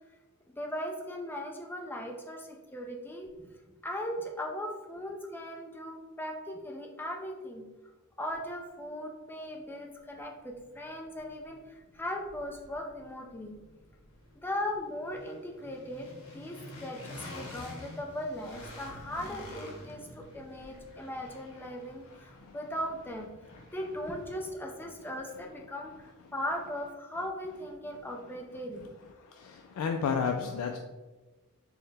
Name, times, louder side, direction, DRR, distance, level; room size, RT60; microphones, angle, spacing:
voice 1, 0.5-3.5 3.8-7.7 8.2-13.6 14.4-23.3 23.7-29.0, left 1 dB, 10° left, 1 dB, 0.4 m, -38 dB
sound 1, 9.6-9.7 10.1-26.1, left 1 dB, 65° left, 0.9 m, -49 dB
voice 2, 29.3-30.8, left 6 dB, 85° left, 4 dB, 0.3 m, -32 dB
4.4 x 2.1 x 3.3 m, 1.2 s
head